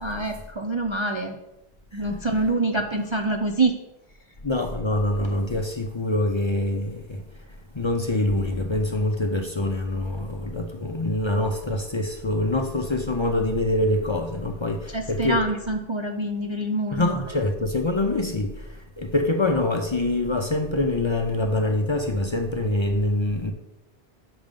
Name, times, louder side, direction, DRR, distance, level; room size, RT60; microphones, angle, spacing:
voice 1, 0.0-1.4 1.9-3.8 14.9-17.2, right 2 dB, 40° right, 0.4 m, -26 dB
voice 2, 1.9-2.2 4.4-7.4 7.7-15.4 17.0-23.5, left 1 dB, 35° left, 0.5 m, -25 dB
6.1 x 5.4 x 5.2 m
omnidirectional pair, 1.1 m